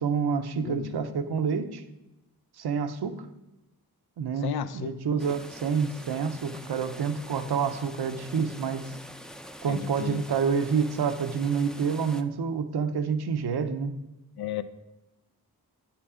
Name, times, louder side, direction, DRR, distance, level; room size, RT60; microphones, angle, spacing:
voice 1, 0.0-1.8 2.6-3.3 4.2-9.0 9.6-13.9, right 6 dB, 75° right, 10 dB, 0.8 m, -28 dB
voice 2, 0.6-1.1 4.4-5.0 9.7-10.2 14.4-14.6, left 8 dB, 70° left, 13 dB, 0.6 m, -34 dB
sound 1, 5.2-12.2, equal, ahead, 0.5 m, -45 dB
8.9 x 5.9 x 4.9 m, 0.96 s
cardioid pair, 55°, 39 cm